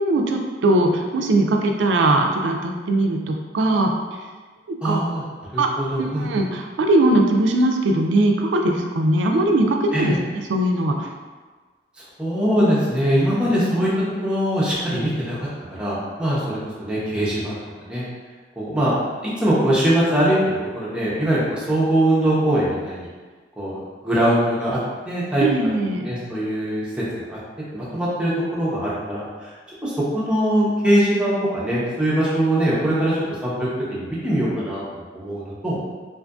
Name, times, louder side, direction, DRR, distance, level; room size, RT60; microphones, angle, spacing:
voice 1, 0.0-3.9 4.7-5.0 5.6-5.7 6.0-10.2 10.5-11.1 25.4-26.1, right 1 dB, 80° right, 3 dB, 0.3 m, -20 dB
voice 2, 4.8-5.2 5.5-6.4 9.9-10.2 12.2-13.9 14.2-15.4 15.7-18.0 18.6-18.9 19.4-23.1 23.6-24.8 25.1-25.5 26.0-27.0 27.3-27.4 27.7-29.5 29.8-35.8, right 1 dB, 5° right, -8 dB, 0.6 m, -22 dB
2.5 x 2.5 x 2.3 m, 1.4 s
head